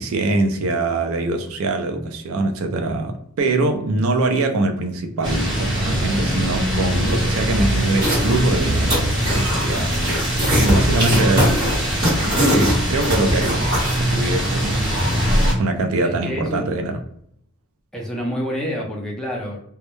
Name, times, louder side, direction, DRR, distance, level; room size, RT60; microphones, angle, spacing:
voice 1, 0.0-10.1 10.5-11.7 12.2-14.9 15.2-17.0, right 2 dB, 70° right, 0.4 m, -23 dB
sound 1, 5.2-15.5, equal, 20° right, 1.0 m, -21 dB
sound 2, 8.0-8.4 8.7-9.6 9.9-14.0, equal, 40° right, 1.0 m, -21 dB
voice 2, 16.0-16.7 17.9-19.6, equal, 5° left, 0.5 m, -27 dB
2.2 x 2.0 x 2.9 m
head